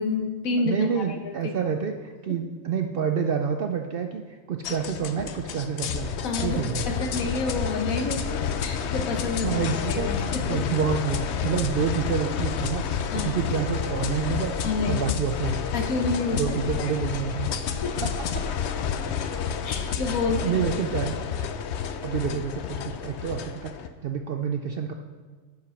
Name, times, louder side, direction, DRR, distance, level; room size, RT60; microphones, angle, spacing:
voice 1, 0.0-1.2 6.2-9.6 9.9-10.4 13.1-13.3 14.6-15.0 15.7-16.4 16.8-16.9 17.8-17.9 19.6-20.7, left 3 dB, 80° left, 4 dB, 1.4 m, -29 dB
voice 2, 0.6-6.1 6.4-7.0 9.4-10.1 10.5-12.9 13.1-14.5 14.9-15.6 16.3-17.5 18.0-18.1 20.4-21.2 22.0-23.7 24.0-24.9, right 7 dB, 65° right, 5 dB, 0.6 m, -28 dB
sound 1, 4.6-23.9, left 7 dB, 65° left, 0.8 m, -30 dB
10.5 x 4.9 x 5.7 m, 1.4 s
omnidirectional pair, 1.4 m